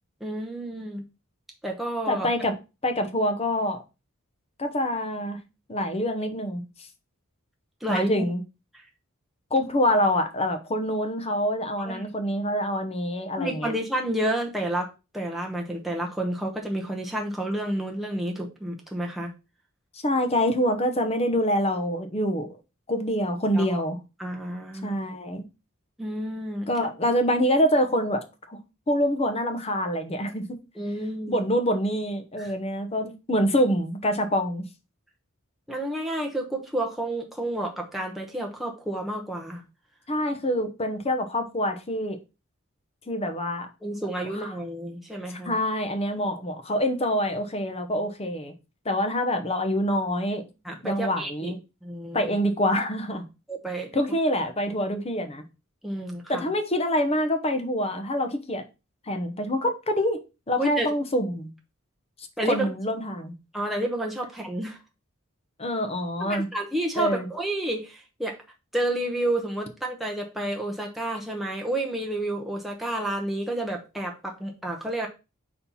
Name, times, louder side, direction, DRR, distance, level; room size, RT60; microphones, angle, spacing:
voice 1, 0.2-1.0 1.6-2.3 7.8-8.1 11.8-12.1 13.4-14.9 15.1-19.3 23.5-23.8 24.2-25.0 26.0-26.7 30.8-31.4 32.4-32.5 35.7-39.6 43.8-45.6 50.6-51.5 51.8-52.3 53.5-53.9 55.8-56.5 60.6-60.9 62.4-62.7 63.5-64.8 66.2-68.4 68.7-75.1, right 1 dB, ahead, 0.9 m, -30 dB
voice 2, 2.1-2.5 2.8-3.8 4.6-5.4 5.7-6.6 7.9-8.4 9.5-13.7 20.0-22.5 22.9-24.0 24.8-25.4 26.7-28.2 28.5-28.6 28.9-30.6 31.3-34.6 40.1-42.2 43.1-43.7 44.4-44.5 45.4-48.5 48.8-50.4 50.8-51.6 52.1-53.3 53.9-55.4 56.3-58.6 59.1-60.2 60.5-61.5 62.5-63.3 65.6-66.5 67.0-67.3, equal, 30° left, 0.8 m, -26 dB
4.3 x 4.3 x 5.5 m
head